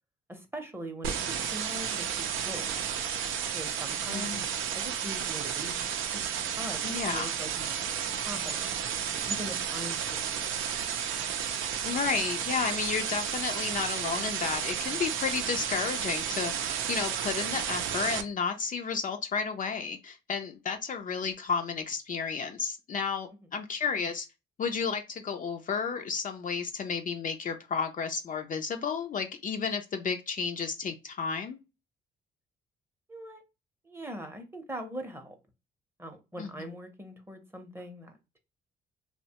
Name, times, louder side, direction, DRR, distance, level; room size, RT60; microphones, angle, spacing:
voice 1, 0.3-2.7 3.5-4.4 4.7-8.0 8.2-8.7 9.1-10.0 10.3-10.5 33.1-33.4 33.8-35.4 36.0-38.1, equal, 10° right, 0.7 m, -41 dB
sound 1, 1.0-18.2, right 8 dB, 85° right, 0.5 m, -32 dB
voice 2, 4.1-4.5 6.8-7.3 11.8-24.3 24.6-31.6 36.4-36.5, left 6 dB, 40° left, 0.4 m, -32 dB
2.9 x 2.1 x 2.8 m
cardioid pair, 90°, 20 cm